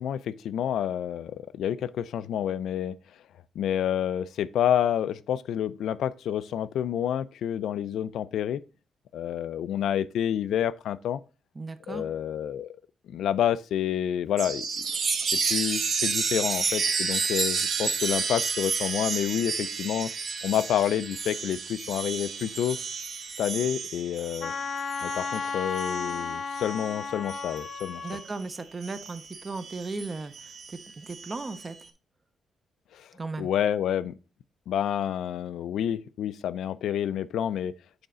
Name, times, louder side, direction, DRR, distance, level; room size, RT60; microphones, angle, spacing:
voice 1, 0.0-3.0 3.6-8.6 9.1-11.2 11.9-12.8 13.1-14.7 15.5-20.1 20.4-22.8 23.4-24.5 25.0-28.0 32.9-33.1 33.4-34.1 34.7-37.7, left 10 dB, 90° left, 0.4 m, -28 dB
voice 2, 11.6-12.0 28.0-31.8 33.1-33.5, right 3 dB, 20° right, 0.5 m, -36 dB
Chime, 14.4-28.4 28.8-31.6, right 5 dB, 45° right, 0.8 m, -31 dB
Wind instrument woodwind instrument, 24.4-28.3, left 5 dB, 40° left, 0.6 m, -33 dB
7.9 x 4.1 x 3.7 m
wide cardioid pair, 175°, 0 cm